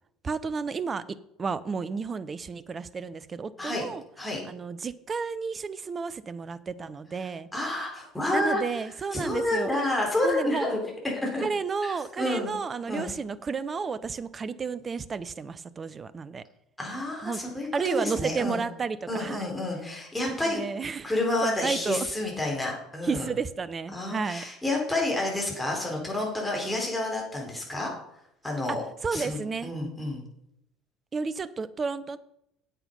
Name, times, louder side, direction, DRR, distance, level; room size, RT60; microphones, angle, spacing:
voice 1, 0.2-4.0 4.5-7.5 8.3-9.7 10.2-10.7 11.4-16.4 17.2-17.4 17.7-19.5 20.2-21.1 21.4-22.1 23.0-24.5 28.7-29.7 31.1-32.2, right 5 dB, 30° right, 17 dB, 0.6 m, -32 dB
voice 2, 7.5-8.6 9.1-10.8 11.2-11.4 11.8-12.5 12.9-13.1 16.8-18.6 19.1-20.6 21.0-23.3 23.9-27.9 28.4-28.8 29.1-30.2, left 2 dB, 5° left, -1 dB, 4.2 m, -29 dB
10.0 x 8.0 x 5.3 m, 0.79 s
figure-of-eight pair, 60°, 0 cm